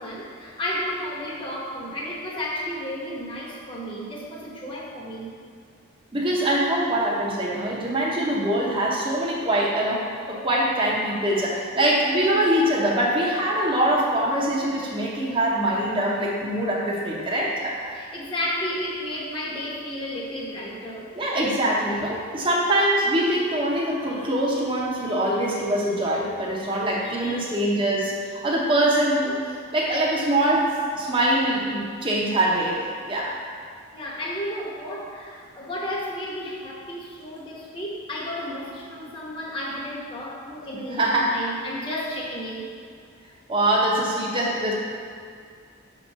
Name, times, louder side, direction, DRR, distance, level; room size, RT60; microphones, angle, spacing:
voice 1, 0.0-5.3 17.9-21.1 27.2-27.5 33.9-42.7, left 1 dB, 25° left, -4 dB, 1.0 m, -32 dB
voice 2, 6.1-18.0 21.1-33.4 40.9-41.4 43.5-44.7, right 1 dB, 25° right, -4 dB, 0.8 m, -23 dB
6.2 x 3.0 x 5.5 m, 2.3 s
head